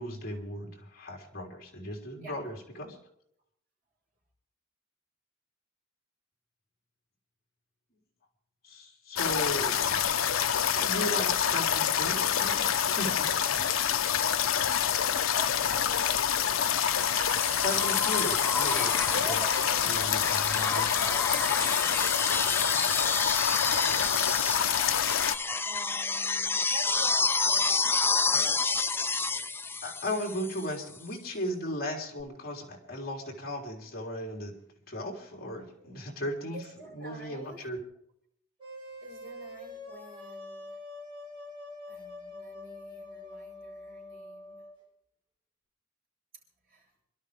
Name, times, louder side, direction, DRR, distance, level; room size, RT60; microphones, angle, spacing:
voice 1, 0.0-3.0 8.6-10.0 10.5-13.3 17.6-19.4 19.8-20.9 29.8-34.6 34.9-36.6 36.9-37.8, left 1 dB, 50° left, 0 dB, 3.7 m, -36 dB
sound 1, 9.2-25.4, left 9 dB, 80° left, 0.7 m, -27 dB
voice 2, 15.3-16.0 19.1-21.4 22.3-24.6 25.6-28.2 30.7-30.8 35.5-36.0 36.5-37.7 39.0-40.8 41.9-44.6 46.7-46.9, right 1 dB, 50° right, -1 dB, 5.9 m, -46 dB
sound 2, 16.7-30.7 32.2-32.3, left 4 dB, 10° left, 0.5 m, -30 dB
sound 3, 38.6-44.8, left 2 dB, 25° right, 7.6 m, -45 dB
27.0 x 12.0 x 3.5 m, 0.71 s
head